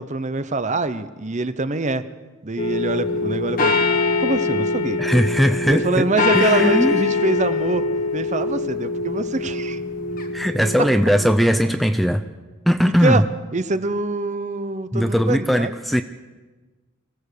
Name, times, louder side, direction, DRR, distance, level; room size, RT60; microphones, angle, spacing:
voice 1, 0.0-2.1 2.4-3.8 4.2-5.0 5.7-7.9 8.1-9.8 12.9-13.2 13.5-15.7, right 3 dB, 35° right, 12 dB, 0.8 m, -24 dB
sound 1, 2.6-11.3, left 3 dB, 40° left, 1.6 m, -23 dB
voice 2, 5.0-7.0 10.3-12.2 12.7-13.2 14.9-16.0, equal, ahead, 8 dB, 0.6 m, -19 dB
24.0 x 17.0 x 6.8 m, 1.3 s
head